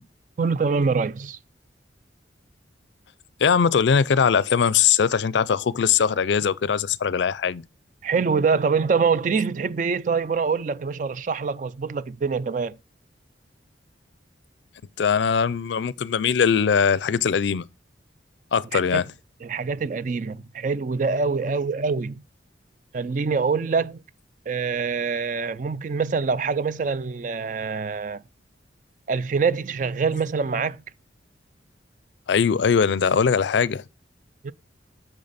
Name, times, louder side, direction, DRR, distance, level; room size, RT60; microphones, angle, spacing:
voice 1, 0.4-1.4 8.0-12.8 18.7-19.0 19.4-22.2 22.9-24.0 24.5-28.2 29.1-30.8 34.4-34.5, right 5 dB, 45° right, 0.4 m, -25 dB
voice 2, 3.4-7.6 15.0-17.7 18.5-19.0 32.3-33.8, left 6 dB, 70° left, 0.4 m, -21 dB
8.5 x 6.4 x 4.1 m
head